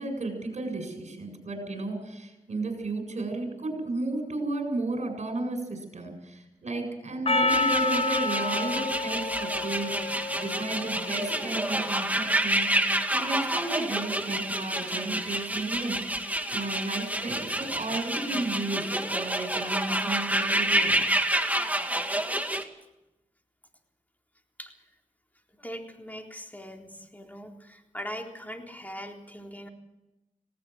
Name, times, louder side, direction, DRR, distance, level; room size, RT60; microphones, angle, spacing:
voice 1, 0.0-16.2 16.5-21.2, right 2 dB, 60° right, 4 dB, 7.6 m, -33 dB
Percussion, 7.3-11.7, left 2 dB, 45° left, 1.2 m, -29 dB
sound 1, 7.5-22.6, right 1 dB, 10° right, 2.2 m, -29 dB
voice 2, 25.6-29.7, equal, 10° left, 2 dB, 3.8 m, -41 dB
19.0 x 18.0 x 8.1 m, 0.96 s
cardioid pair, 55°, 13 cm